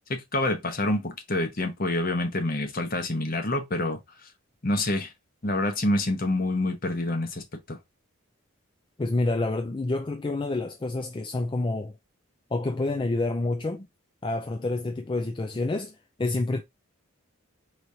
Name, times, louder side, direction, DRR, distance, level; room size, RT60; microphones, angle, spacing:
voice 1, 0.1-4.0 4.6-5.1 5.4-7.8, left 1 dB, 40° left, 0.9 m, -27 dB
voice 2, 9.0-12.0 12.5-13.9 14.2-16.6, left 2 dB, 20° left, 0.3 m, -28 dB
4.7 x 3.1 x 2.7 m
head